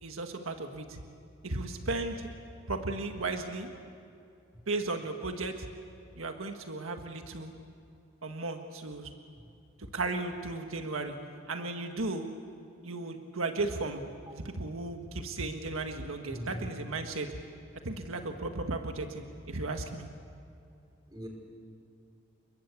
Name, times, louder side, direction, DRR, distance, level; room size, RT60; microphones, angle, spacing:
voice 1, 0.0-1.0 1.4-2.3 2.7-3.7 4.7-5.7 6.2-7.5 8.2-9.1 9.9-11.2 11.5-12.3 12.8-14.1 14.3-17.3 17.8-20.1, right 2 dB, 85° right, 5 dB, 1.6 m, -35 dB
voice 2, 16.3-16.7 21.1-21.3, equal, 20° right, 1 dB, 4.8 m, -41 dB
29.5 x 21.5 x 8.4 m, 2.5 s
head